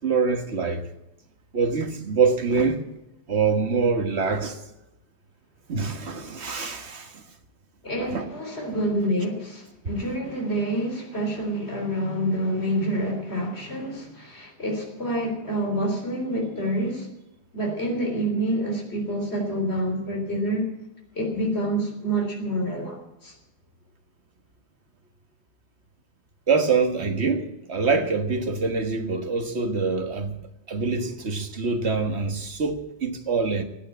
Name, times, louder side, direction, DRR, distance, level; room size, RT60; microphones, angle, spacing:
voice 1, 0.0-0.9 1.5-2.8 3.3-4.6 5.7-7.2 8.0-8.3 26.5-30.4 30.7-33.6, right 4 dB, 70° right, 1.8 m, -25 dB
voice 2, 7.8-17.1 17.5-20.7 21.1-23.3, right 1 dB, 70° left, 3.9 m, -27 dB
16.5 x 9.3 x 8.5 m
omnidirectional pair, 1.2 m